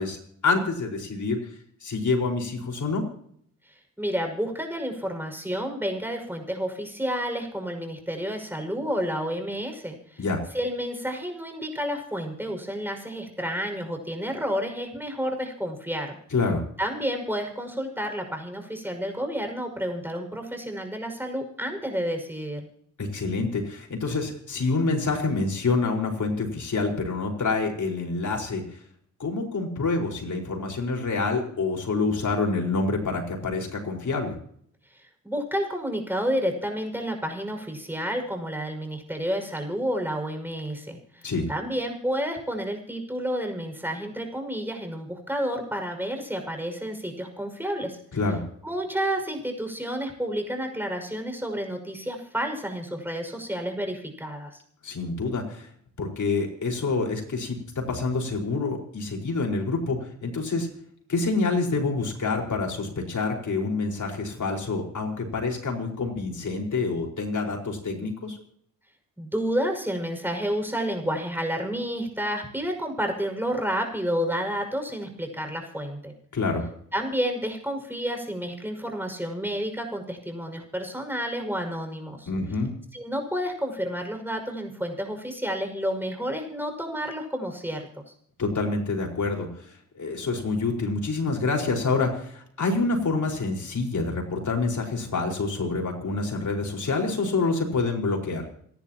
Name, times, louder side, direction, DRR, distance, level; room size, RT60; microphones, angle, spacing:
voice 1, 0.0-1.5 1.8-3.0 10.2-10.4 16.3-16.6 23.0-28.8 29.2-34.4 41.2-41.5 48.1-48.4 54.8-55.7 56.0-60.7 61.1-68.4 76.3-76.6 82.3-82.7 88.4-98.5, left 3 dB, 50° left, 1 dB, 5.0 m, -27 dB
voice 2, 4.0-10.2 10.5-16.2 16.8-22.7 35.2-48.0 48.6-54.6 69.2-76.1 76.9-82.3 82.9-87.9, equal, 5° right, 4 dB, 5.9 m, -30 dB
27.5 x 11.5 x 3.0 m, 0.64 s
supercardioid pair, 45°, 38 cm